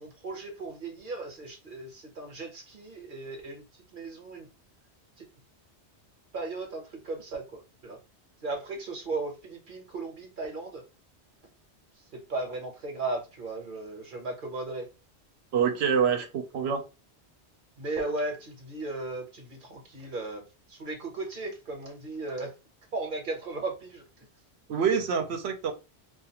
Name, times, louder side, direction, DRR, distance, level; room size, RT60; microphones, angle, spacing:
voice 1, 0.0-4.5 5.2-5.3 6.3-8.0 8.4-10.8 12.1-14.9 17.8-22.5 22.9-24.3, right 2 dB, 50° right, 0.9 m, -36 dB
voice 2, 15.5-16.8 24.7-25.7, right 7 dB, 75° right, 0.8 m, -26 dB
2.4 x 2.4 x 2.8 m
omnidirectional pair, 1.1 m